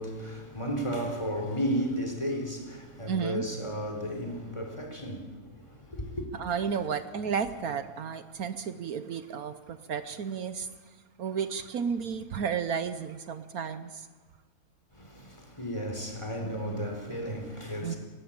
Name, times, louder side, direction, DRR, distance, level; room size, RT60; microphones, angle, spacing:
voice 1, 0.0-6.2 14.9-18.0, equal, 20° left, 4.1 m, -34 dB
voice 2, 3.1-3.4 6.4-10.7 11.2-14.1 17.8-17.9, right 6 dB, 70° right, 1.3 m, -32 dB
29.5 x 13.5 x 8.8 m
omnidirectional pair, 1.7 m